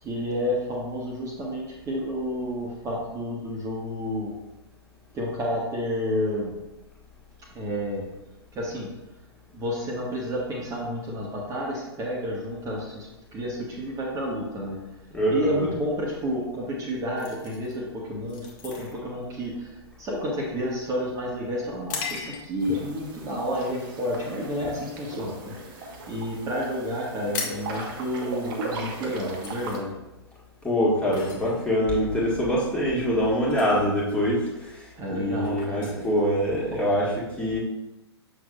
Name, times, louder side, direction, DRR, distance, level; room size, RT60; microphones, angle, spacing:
voice 1, 0.0-4.3 5.1-6.5 7.5-8.0 8.5-8.9 9.5-14.8 15.3-19.7 20.0-29.9 34.9-36.2 36.7-37.0, equal, 25° right, -4 dB, 1.4 m, -30 dB
voice 2, 15.1-15.7 30.6-37.6, equal, 10° left, -6 dB, 1.8 m, -24 dB
sound 1, 17.2-22.8 23.3-23.5 24.0-24.4 24.7-25.9 26.2-26.3 26.5-26.6 26.9-36.9, left 5 dB, 40° left, 1.3 m, -40 dB
sound 2, 22.6-29.8, right 3 dB, 50° right, 1.4 m, -38 dB
7.1 x 6.2 x 2.5 m, 0.99 s
figure-of-eight pair, 110°, 14 cm